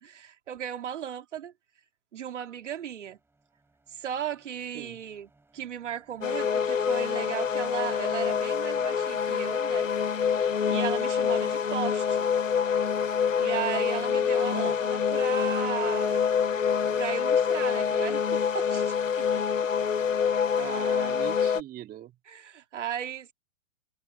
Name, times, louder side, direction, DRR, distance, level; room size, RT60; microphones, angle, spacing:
voice 1, 0.0-1.5 2.1-3.2 3.9-5.3 5.5-9.9 10.7-12.3 13.4-16.3 17.0-19.3 22.3-23.3, right 9 dB, 70° right, 2.5 m, -36 dB
sound 1, 2.2-21.4, right 2 dB, 5° right, 5.8 m, -61 dB
sound 2, 6.2-21.6, left 7 dB, 85° left, 0.9 m, -26 dB
voice 2, 20.5-22.2, right 13 dB, 25° right, 2.2 m, -40 dB
figure-of-eight pair, 115°, 38 cm